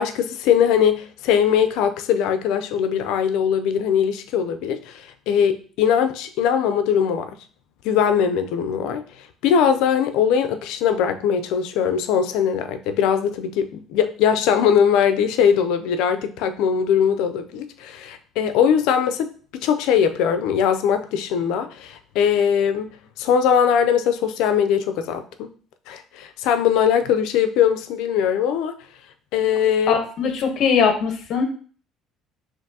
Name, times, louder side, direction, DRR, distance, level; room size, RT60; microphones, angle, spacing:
voice 1, 0.0-7.3 7.8-22.9 23.2-25.5 25.9-28.8 29.3-30.0, left 8 dB, 80° left, 9 dB, 0.4 m, -21 dB
voice 2, 29.9-31.4, left 6 dB, 55° left, 5 dB, 0.8 m, -20 dB
5.8 x 2.6 x 2.7 m, 0.42 s
cardioid pair, 145°, 0 cm